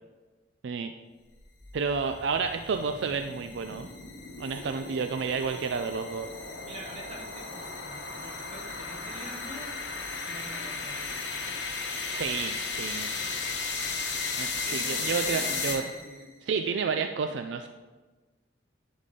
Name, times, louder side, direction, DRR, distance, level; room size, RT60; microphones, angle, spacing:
sound 1, 1.4-16.2, left 4 dB, 70° left, 1.0 m, -35 dB
voice 1, 1.7-3.9 4.4-6.3 12.1-13.1 14.4-15.8 16.5-17.7, right 5 dB, 70° right, 7 dB, 0.4 m, -30 dB
voice 2, 6.6-9.8 10.2-11.7 14.6-16.3, right 1 dB, 30° right, -3 dB, 1.5 m, -45 dB
10.5 x 4.1 x 3.8 m, 1.3 s
head